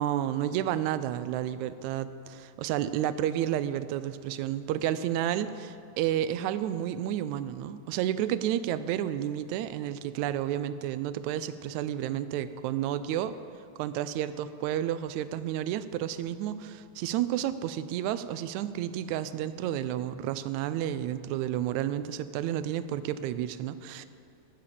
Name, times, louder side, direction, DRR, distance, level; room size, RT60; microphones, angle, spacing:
voice 1, 0.0-13.4 13.8-24.1, right 11 dB, 85° right, 13 dB, 1.9 m, -31 dB
14.0 x 7.3 x 8.4 m, 2.6 s
omnidirectional pair, 3.3 m